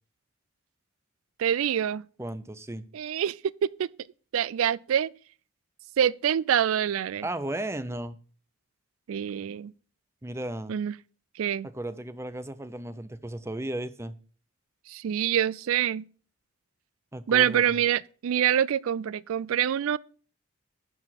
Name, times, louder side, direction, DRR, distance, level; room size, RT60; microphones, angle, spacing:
voice 1, 1.4-2.0 2.9-3.9 4.3-5.1 6.0-7.2 9.1-9.7 10.7-10.9 11.4-11.7 14.9-16.0 17.3-20.0, right 9 dB, 80° right, 0.3 m, -26 dB
voice 2, 2.2-2.8 7.2-8.2 10.2-10.7 11.6-14.2 17.1-17.8, right 1 dB, 15° right, 0.5 m, -35 dB
11.5 x 4.8 x 5.9 m
head